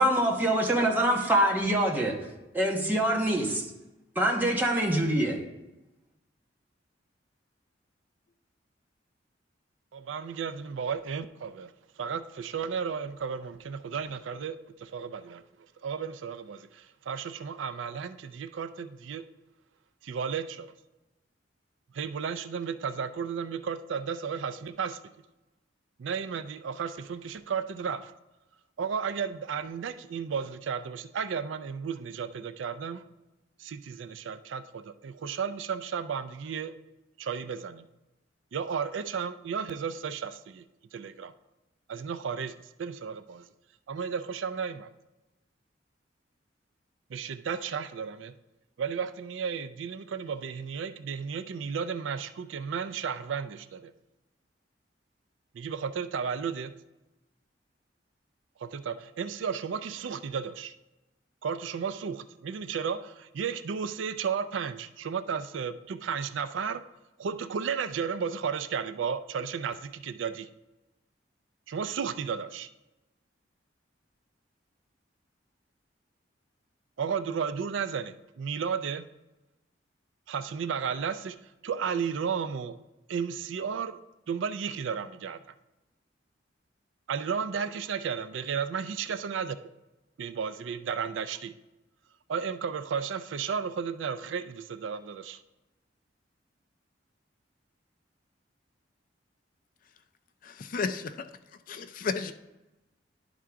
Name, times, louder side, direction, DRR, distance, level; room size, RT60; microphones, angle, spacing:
voice 1, 0.0-2.2 2.5-3.7 4.1-5.4, right 1 dB, 10° right, -1 dB, 1.1 m, -25 dB
voice 2, 9.9-11.7 12.0-15.4 15.8-19.2 20.0-20.7 21.9-25.0 26.0-28.1 28.8-33.0 33.6-36.8 37.2-37.9 38.5-40.6 40.9-41.3 41.9-43.5 43.9-44.9 47.1-48.3 48.8-53.9 55.5-56.8 58.6-60.7 61.4-66.8 67.2-70.5 71.7-72.7 77.0-79.1 80.3-81.4 81.6-82.8 83.1-84.0 84.3-85.4 87.1-89.6 90.2-91.5 92.3-95.4, right 6 dB, 90° right, 12 dB, 0.4 m, -33 dB
voice 3, 100.4-101.3 101.7-102.3, left 5 dB, 45° left, 9 dB, 0.4 m, -33 dB
11.0 x 3.7 x 4.6 m, 1.0 s
head